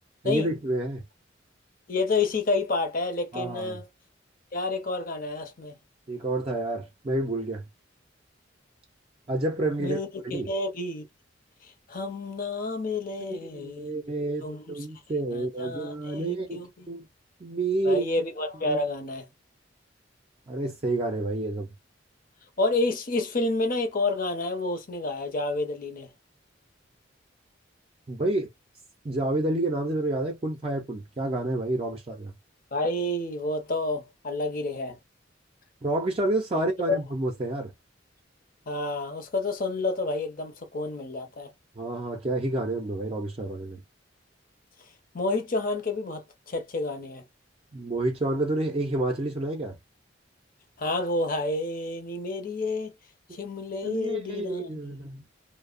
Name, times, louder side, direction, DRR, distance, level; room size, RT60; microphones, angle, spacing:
voice 1, 0.2-1.0 3.3-3.8 6.1-7.6 9.3-10.0 10.3-10.5 13.3-16.6 16.9-17.0 17.4-18.0 18.7-18.8 20.5-21.7 28.1-28.5 29.0-32.3 35.8-37.7 41.8-43.8 47.7-49.8 53.8-55.2, right 2 dB, 30° right, 0.5 m, -29 dB
voice 2, 1.9-3.8 4.5-5.8 9.8-11.1 11.6-13.9 14.4-14.9 15.3-16.9 17.8-19.3 22.6-26.1 32.7-35.0 36.9-37.0 38.7-41.5 45.1-47.2 50.8-52.9 53.3-54.9, left 2 dB, 50° left, 0.7 m, -29 dB
2.7 x 2.0 x 2.4 m
head